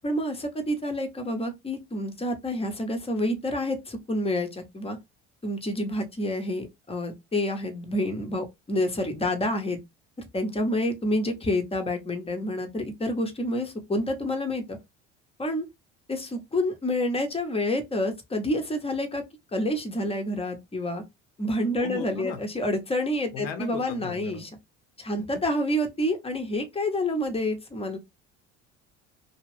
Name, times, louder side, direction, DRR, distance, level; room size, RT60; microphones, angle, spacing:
voice 1, 0.0-5.0 5.4-9.8 10.3-14.8 15.4-15.7 16.1-19.2 19.5-21.0 21.4-24.5 25.0-28.0, left 1 dB, 15° left, 0.8 m, -28 dB
voice 2, 21.8-22.4 23.3-24.4, left 6 dB, 70° left, 0.8 m, -36 dB
2.5 x 2.2 x 3.2 m
hypercardioid pair, 70°, 36 cm